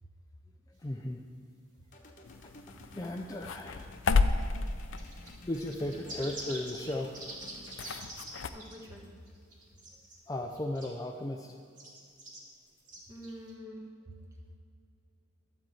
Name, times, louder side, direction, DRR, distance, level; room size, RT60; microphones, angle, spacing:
voice 1, 0.7-1.2 2.4-2.5 2.9-3.9 5.4-7.2 10.3-11.6, left 1 dB, 20° left, 2 dB, 0.4 m, -36 dB
sound 1, 1.9-9.7, left 1 dB, 40° left, 1.1 m, -54 dB
sound 2, 2.2-8.5, left 4 dB, 80° left, 0.5 m, -33 dB
sound 3, 5.0-8.3 8.6-8.8 9.3-10.2 10.5-11.0 11.8-12.4 12.9-13.5, right 2 dB, 40° right, 2.2 m, -45 dB
voice 2, 8.5-9.2 13.1-14.1, equal, 15° right, -2 dB, 1.4 m, -46 dB
12.0 x 4.5 x 7.8 m, 2.4 s
head